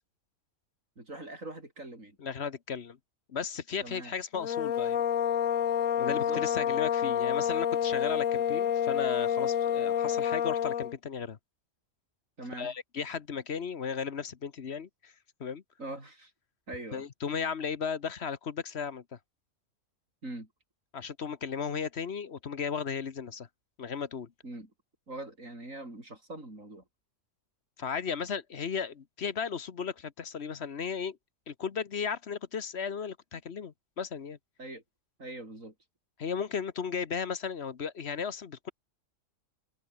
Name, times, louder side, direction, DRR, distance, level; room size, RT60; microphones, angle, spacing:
voice 1, 1.0-2.2 3.8-4.2 6.1-6.8 12.4-12.7 15.8-16.3 16.7-17.0 20.2-20.5 24.4-24.7 25.1-26.8 34.6-34.8 35.2-35.7, right 2 dB, 85° right, 7.0 m, -42 dB
voice 2, 2.2-3.0 3.3-5.0 6.0-11.4 12.6-15.1 15.4-15.6 16.9-19.0 20.9-23.5 23.8-24.3 27.8-31.2 31.5-34.4 36.2-38.7, left 6 dB, 55° left, 1.3 m, -35 dB
sound 1, 4.3-10.9, left 9 dB, 90° left, 1.4 m, -28 dB
omnidirectional pair, 1.3 m